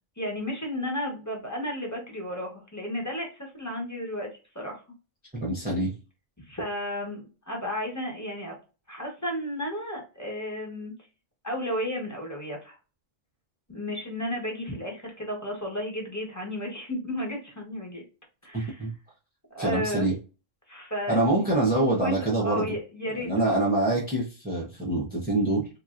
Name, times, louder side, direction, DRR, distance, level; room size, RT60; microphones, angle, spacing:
voice 1, 0.2-4.3 4.5-4.8 6.5-8.6 8.9-10.9 11.4-12.8 13.7-18.0 18.4-18.9 19.5-20.1 20.7-23.6, equal, 15° left, -1 dB, 1.1 m, -33 dB
voice 2, 5.3-5.9 18.5-18.9 19.6-20.1 21.1-22.7 23.2-25.7, right 2 dB, 10° right, -3 dB, 0.6 m, -25 dB
3.5 x 3.0 x 2.4 m, 0.32 s
omnidirectional pair, 1.4 m